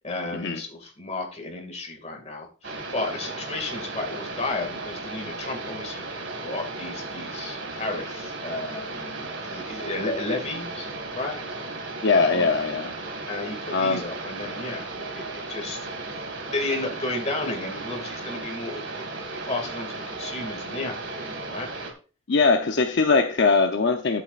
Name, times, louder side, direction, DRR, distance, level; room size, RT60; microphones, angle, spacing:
voice 1, 0.0-6.1 6.4-11.4 12.1-12.5 13.3-15.8 16.0-21.7, left 2 dB, 35° left, 3 dB, 2.2 m, -33 dB
sound 1, 2.6-21.9, right 3 dB, 65° right, 2.1 m, -35 dB
voice 2, 12.0-12.9 13.7-14.0 22.3-24.2, left 4 dB, 65° left, 4 dB, 0.8 m, -21 dB
12.0 x 8.4 x 2.5 m, 0.36 s
head